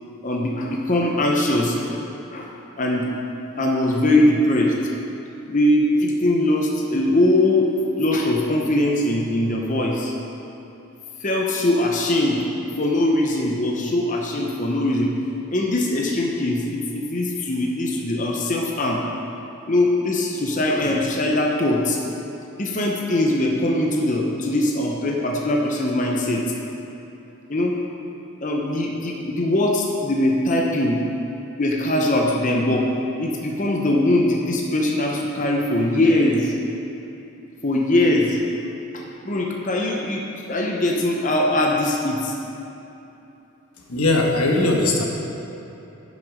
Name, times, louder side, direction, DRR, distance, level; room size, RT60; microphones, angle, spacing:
voice 1, 0.2-2.0 2.3-2.5 2.8-3.1 3.6-4.8 5.5-7.7 8.0-10.1 11.2-12.5 12.8-15.1 15.5-19.0 19.7-22.0 22.6-26.4 27.5-27.8 28.4-31.0 31.6-32.9 33.2-36.6 37.6-38.4 38.9-42.3, left 1 dB, 35° left, -1 dB, 0.8 m, -21 dB
voice 2, 43.9-45.0, left 2 dB, 90° left, 0 dB, 1.3 m, -19 dB
10.5 x 6.2 x 5.2 m, 2.9 s
head